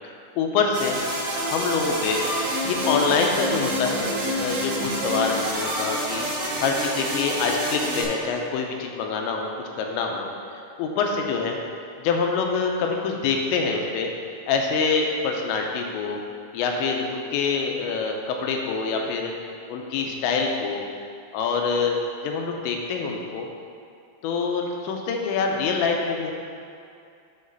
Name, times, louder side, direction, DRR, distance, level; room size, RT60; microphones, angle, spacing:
voice 1, 0.4-1.0 1.4-2.2 2.6-4.1 4.4-6.2 6.6-9.5 9.8-10.3 10.8-11.6 12.0-14.1 14.5-16.2 16.5-19.3 19.7-20.8 21.3-22.0 22.2-23.5 24.2-26.3, left 5 dB, 80° left, 2 dB, 2.9 m, -25 dB
sound 1, 0.7-8.0, equal, 65° right, 3.5 m, -27 dB
8.7 x 4.1 x 5.4 m, 2.5 s
omnidirectional pair, 5.3 m